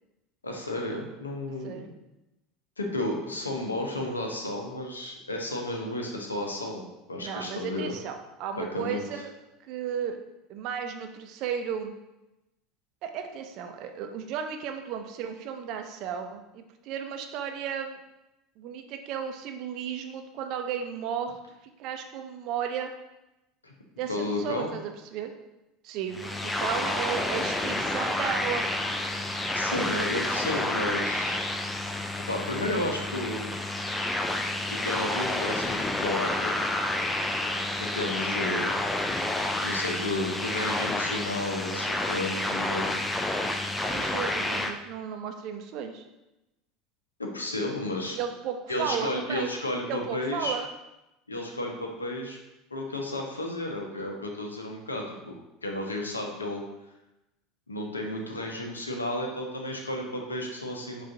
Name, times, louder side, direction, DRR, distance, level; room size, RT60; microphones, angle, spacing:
voice 1, 0.4-1.9 2.8-8.0 8.6-9.1 23.6-23.7 24.1-24.7 29.5-31.4 32.3-33.5 34.7-36.6 37.8-38.7 39.6-43.1 47.2-48.2 48.7-50.5 51.3-52.4 52.7-56.6 57.7-61.0, left 1 dB, 90° left, 1 dB, 0.6 m, -32 dB
voice 2, 7.2-9.3 9.7-10.2 10.5-11.9 13.0-18.0 18.6-21.4 21.8-22.9 24.0-25.3 25.8-28.7 38.3-38.4 43.8-46.0 48.1-49.5 49.9-50.7, right 8 dB, 55° right, 6 dB, 0.5 m, -34 dB
sound 1, 26.1-44.7, left 1 dB, 10° left, 0.4 m, -29 dB
5.0 x 2.4 x 3.7 m, 0.95 s
figure-of-eight pair, 75°, 0 cm